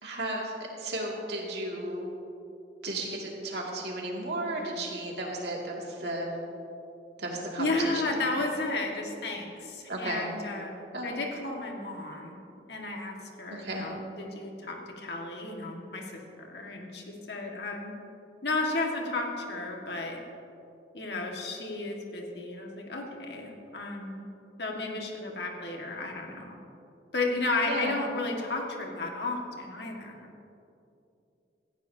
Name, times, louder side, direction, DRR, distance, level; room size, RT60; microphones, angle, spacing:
voice 1, 0.0-0.5 0.8-2.1 2.8-6.3 7.2-8.0 9.9-10.3 10.9-11.1 13.5-13.9 27.6-28.0, right 1 dB, 65° right, -2 dB, 2.4 m, -34 dB
voice 2, 7.6-12.4 12.7-16.1 16.4-17.9 18.4-20.2 20.9-24.2 24.6-26.6 27.1-30.3, left 2 dB, 70° left, 1 dB, 1.8 m, -33 dB
17.0 x 14.5 x 2.8 m, 2.7 s
head